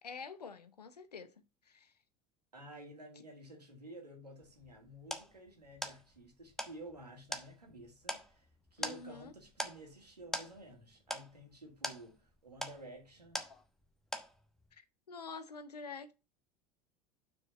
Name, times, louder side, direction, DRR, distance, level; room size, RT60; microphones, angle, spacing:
voice 1, 0.0-1.3 1.7-1.9 8.8-9.3 13.4-13.6 14.7-16.1, left 5 dB, 80° left, 0.8 m, -47 dB
voice 2, 2.5-13.5, right 1 dB, 85° right, 2.2 m, -52 dB
sound 1, 4.4-13.9 14.1-14.7, equal, ahead, 1.1 m, -43 dB
6.2 x 4.8 x 5.3 m
figure-of-eight pair, 75°, 20 cm